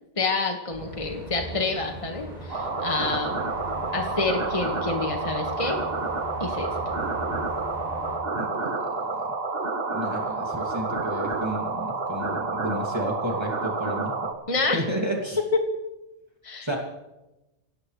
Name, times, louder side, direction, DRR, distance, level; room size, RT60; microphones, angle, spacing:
voice 1, 0.2-3.4 3.9-5.8 6.4-6.8 14.5-14.8 15.5-15.6 16.4-16.7, left 3 dB, 30° left, 3 dB, 1.7 m, -28 dB
sound 1, 0.7-8.2, right 1 dB, 40° right, 7.6 m, -39 dB
sound 2, 2.5-14.3, right 3 dB, 55° right, 1.7 m, -29 dB
voice 2, 8.4-9.2 9.9-14.2 14.7-15.4 16.6-16.8, right 1 dB, 20° right, -1 dB, 2.6 m, -32 dB
24.5 x 18.0 x 3.3 m, 0.98 s
omnidirectional pair, 1.2 m